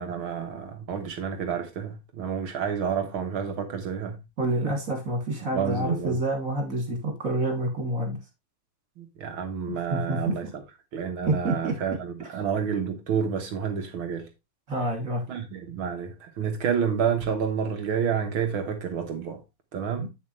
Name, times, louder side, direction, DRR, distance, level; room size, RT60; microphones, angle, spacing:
voice 1, 0.0-4.2 5.5-6.2 9.0-10.6 10.9-14.3 15.3-19.4 19.7-20.1, right 7 dB, 70° right, 2.0 m, -29 dB
voice 2, 4.4-8.2 9.7-10.3 11.3-11.8 14.7-15.2 20.0-20.1, right 1 dB, 35° right, 3.2 m, -28 dB
8.7 x 7.3 x 3.2 m
omnidirectional pair, 2.4 m